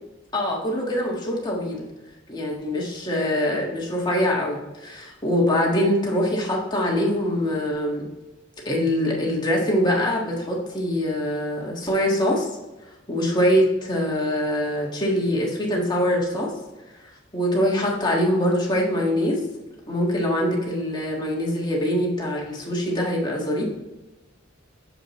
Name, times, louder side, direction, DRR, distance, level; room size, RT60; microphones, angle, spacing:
voice 1, 0.3-1.9 2.3-8.1 8.6-12.5 13.1-16.5 17.3-19.4 19.9-23.6, equal, 20° left, -2 dB, 1.5 m, -23 dB
6.9 x 5.0 x 3.0 m, 1.1 s
head